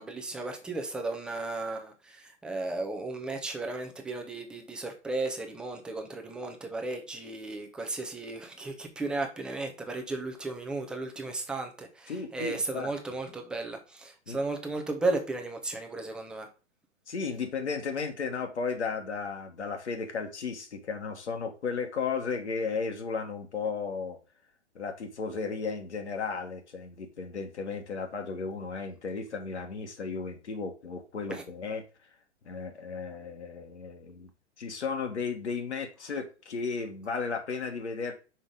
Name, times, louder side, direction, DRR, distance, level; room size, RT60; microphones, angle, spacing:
voice 1, 0.0-16.5 31.3-31.4, right 2 dB, 5° right, 0.3 m, -35 dB
voice 2, 12.1-12.9 14.3-14.4 17.1-24.2 24.7-31.8 32.4-34.3 34.6-38.1, left 5 dB, 70° left, 1.6 m, -34 dB
5.5 x 4.8 x 3.6 m
figure-of-eight pair, 110°, 35 cm